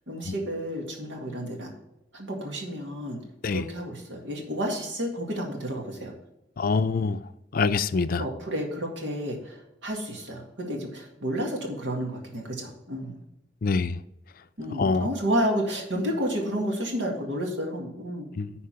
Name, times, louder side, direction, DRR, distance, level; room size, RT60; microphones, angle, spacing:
voice 1, 0.1-1.7 2.1-3.2 3.5-6.1 8.1-13.2 14.6-18.3, equal, 90° right, 2.2 m, -31 dB
voice 2, 6.6-7.2 7.5-8.2 13.6-14.0 14.8-15.1 18.4-18.5, left 4 dB, 50° left, 0.4 m, -25 dB
10.0 x 4.3 x 4.9 m
head